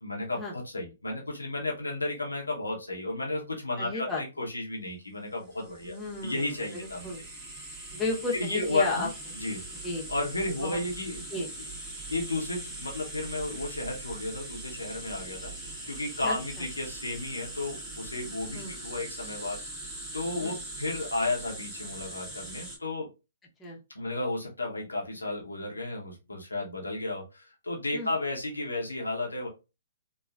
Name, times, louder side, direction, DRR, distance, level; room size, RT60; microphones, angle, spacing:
voice 1, 0.0-5.9 6.2-7.1 8.3-9.1 9.4-9.6 10.1-11.2 12.1-19.6 20.1-23.1 23.9-29.5, left 2 dB, 85° left, -1 dB, 0.9 m, -33 dB
voice 2, 3.8-4.2 5.8-7.2 7.9-9.1 9.8-10.1 10.6-10.8 11.3-11.5 16.2-16.3 18.5-18.7 20.4-20.6 23.6-23.8 27.9-28.1, left 2 dB, 15° left, -2 dB, 1.0 m, -33 dB
sound 1, 5.5-22.8, right 2 dB, 15° right, 1.1 m, -41 dB
3.0 x 2.3 x 2.4 m, 0.28 s
figure-of-eight pair, 125°, 0 cm